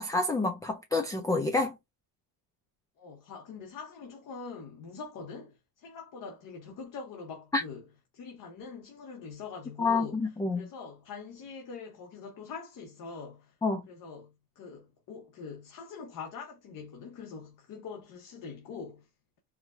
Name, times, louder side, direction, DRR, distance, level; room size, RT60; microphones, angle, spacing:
voice 1, 0.0-1.7 7.5-7.6 9.8-10.7 13.6-13.8, left 3 dB, 10° left, 0.3 m, -28 dB
voice 2, 3.0-7.8 8.1-10.2 10.5-13.6 13.9-19.1, left 5 dB, 50° left, 1.0 m, -44 dB
4.7 x 2.1 x 2.5 m
cardioid pair, 150°, 41 cm